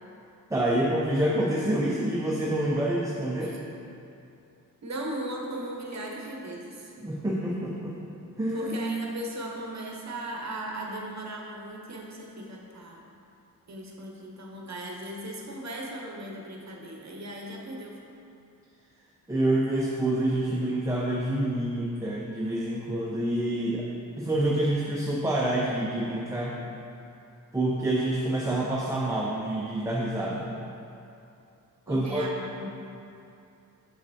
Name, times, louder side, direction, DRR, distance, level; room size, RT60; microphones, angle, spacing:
voice 1, 0.5-3.5 7.0-8.0 8.4-8.7 19.3-23.9 24.2-26.6 27.5-30.5 31.9-32.2, right 1 dB, 10° right, -4 dB, 0.5 m, -27 dB
voice 2, 4.8-6.9 8.5-13.1 13.7-18.0 31.9-32.7, right 1 dB, 50° right, -1 dB, 0.8 m, -37 dB
6.5 x 6.4 x 2.7 m, 2.7 s
wide cardioid pair, 120°, 35 cm